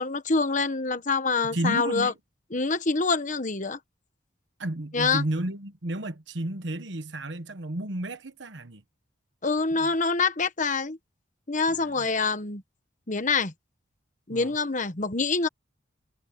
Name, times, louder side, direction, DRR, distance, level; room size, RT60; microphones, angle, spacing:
voice 1, 0.0-2.1 2.5-3.8 4.9-5.2 9.4-11.0 11.5-12.6 13.1-13.5 14.3-15.5, left 4 dB, 40° left, 1.3 m, -26 dB
voice 2, 1.5-2.1 4.6-8.8 9.8-9.9 11.7-12.1 14.3-14.5, right 1 dB, 65° right, 1.2 m, -32 dB
head